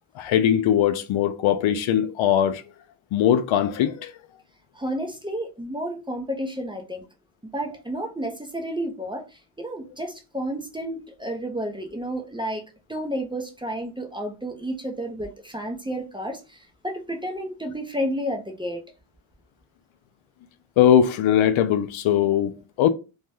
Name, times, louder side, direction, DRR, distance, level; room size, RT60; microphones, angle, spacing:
voice 1, 0.2-2.6 3.1-4.1 20.8-22.9, left 10 dB, 70° left, 0.5 m, -20 dB
voice 2, 4.7-7.0 7.5-12.6 12.9-18.8, equal, 10° right, 0.5 m, -31 dB
2.7 x 2.2 x 3.3 m
cardioid pair, 85°, 49 cm